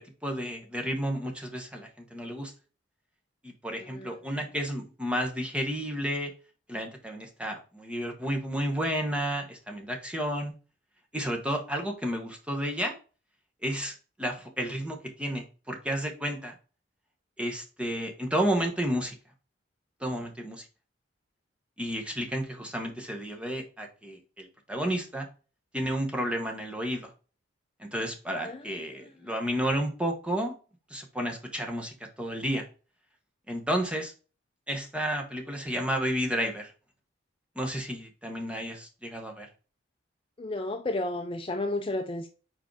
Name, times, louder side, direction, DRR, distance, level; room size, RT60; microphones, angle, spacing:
voice 1, 0.0-2.5 3.4-6.3 6.7-10.5 11.1-13.0 13.6-13.9 14.2-16.5 17.4-19.1 20.0-20.7 21.8-25.3 25.7-27.1 27.8-30.6 30.9-32.6 33.5-34.1 34.7-36.7 37.6-39.5, equal, 5° right, 1.1 m, -31 dB
voice 2, 3.8-4.2 28.4-28.7 29.0-29.3 40.4-42.3, left 2 dB, 25° left, 0.4 m, -33 dB
4.8 x 4.5 x 4.7 m
head